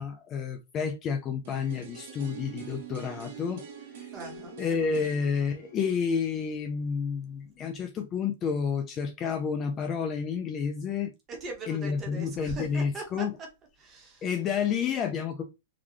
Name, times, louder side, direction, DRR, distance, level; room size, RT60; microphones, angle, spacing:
voice 1, 0.0-3.6 4.0-4.1 4.6-11.1 11.7-13.4 14.2-15.4, left 6 dB, 20° left, 0.3 m, -30 dB
sound 1, 1.4-7.4 7.7-7.8, right 6 dB, 55° right, 1.0 m, -45 dB
voice 2, 4.1-4.6 11.3-13.2 13.8-14.2, right 3 dB, 15° right, 0.9 m, -40 dB
3.8 x 2.2 x 3.1 m
supercardioid pair, 175°, 0 cm